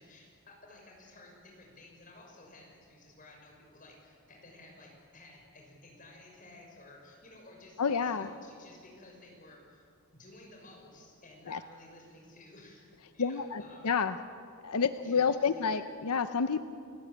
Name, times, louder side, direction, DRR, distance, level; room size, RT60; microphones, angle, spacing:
voice 1, 0.0-9.9 10.1-13.9 14.9-15.7, left 2 dB, 35° left, 0 dB, 6.3 m, -54 dB
voice 2, 7.8-8.3 11.5-11.6 13.2-14.2 14.6-16.6, left 6 dB, 90° left, 11 dB, 0.7 m, -29 dB
29.5 x 18.0 x 8.8 m, 2.4 s
head